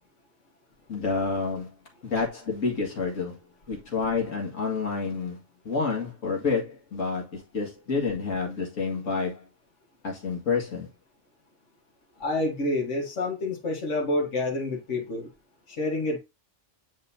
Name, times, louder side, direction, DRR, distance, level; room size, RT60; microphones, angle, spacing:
voice 1, 0.9-1.7 2.0-3.4 3.7-5.4 5.6-9.4 10.0-10.9, left 4 dB, 90° left, 2.3 m, -29 dB
voice 2, 12.2-15.3 15.7-16.2, left 2 dB, 70° left, 1.9 m, -28 dB
9.5 x 3.9 x 2.7 m
omnidirectional pair, 1.3 m